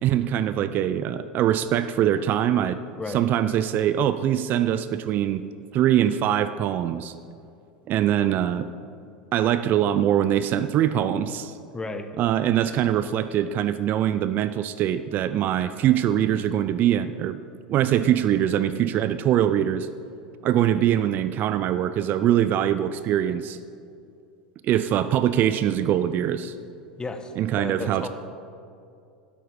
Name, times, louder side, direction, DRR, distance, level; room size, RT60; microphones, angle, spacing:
voice 1, 0.0-2.8 3.1-5.4 5.7-7.1 7.9-8.7 9.3-11.6 12.2-17.4 17.7-19.9 20.4-23.6 24.6-26.5 27.4-28.1, right 11 dB, 40° right, 12 dB, 0.5 m, -23 dB
voice 2, 11.7-12.1 27.0-27.3 27.6-28.1, left 3 dB, 15° left, 7 dB, 1.2 m, -32 dB
12.0 x 11.5 x 5.0 m, 2.5 s
figure-of-eight pair, 80°, 5 cm